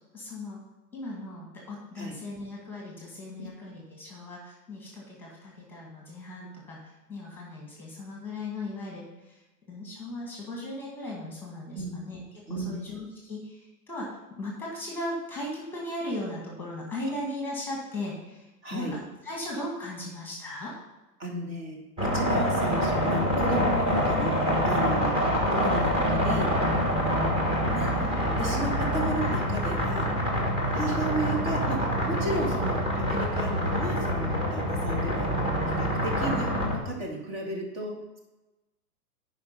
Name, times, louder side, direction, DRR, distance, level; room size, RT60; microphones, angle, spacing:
voice 1, 0.1-0.6 0.9-9.4 9.7-12.2 12.5-20.7, left 1 dB, 5° left, -3 dB, 1.8 m, -37 dB
voice 2, 18.6-18.9 21.2-24.3 24.7-25.2 25.5-26.5 27.6-30.1 30.7-35.3 35.8-38.2, right 2 dB, 35° right, 0 dB, 2.2 m, -34 dB
sound 1, 22.0-36.8, equal, 10° right, 1.3 m, -26 dB
9.4 x 5.2 x 5.3 m, 1.1 s
hypercardioid pair, 150°, 47 cm